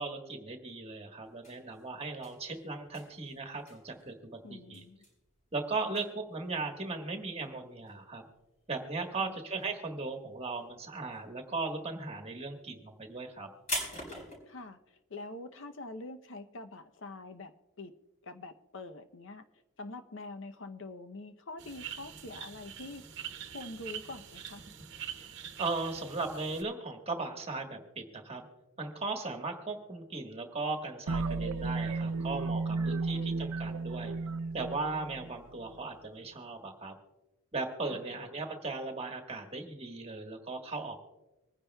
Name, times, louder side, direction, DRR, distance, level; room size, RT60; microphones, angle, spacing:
voice 1, 0.0-4.8 5.5-8.3 8.7-13.5 25.2-25.3 25.6-28.4 28.8-34.1 34.5-36.9 37.5-41.0, right 3 dB, 25° right, 3 dB, 1.4 m, -37 dB
sound 1, 1.3-9.2 9.5-10.2 10.4-14.4, left 1 dB, 35° left, 4.6 m, -43 dB
voice 2, 4.4-5.1 9.2-9.3 14.5-17.9 18.2-19.4 19.8-23.0 23.5-24.6 32.7-33.3 37.9-38.2, left 2 dB, 60° left, 9 dB, 0.7 m, -45 dB
sound 2, 21.6-26.6, right 9 dB, 55° right, 1.0 m, -44 dB
sound 3, 31.1-35.8, right 3 dB, 90° right, 0.5 m, -34 dB
25.5 x 10.0 x 2.3 m, 1.0 s
head